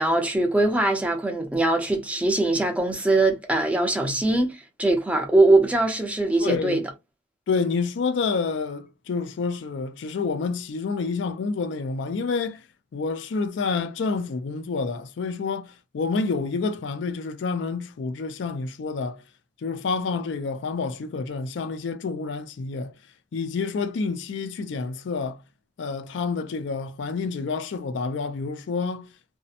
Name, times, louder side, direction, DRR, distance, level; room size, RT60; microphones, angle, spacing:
voice 1, 0.0-6.8, right 2 dB, 5° right, 0.5 m, -22 dB
voice 2, 6.4-6.8 7.5-12.6 12.9-19.2 19.6-22.9 23.3-25.4 25.8-29.1, left 4 dB, 75° left, 0.4 m, -28 dB
2.7 x 2.0 x 2.4 m
head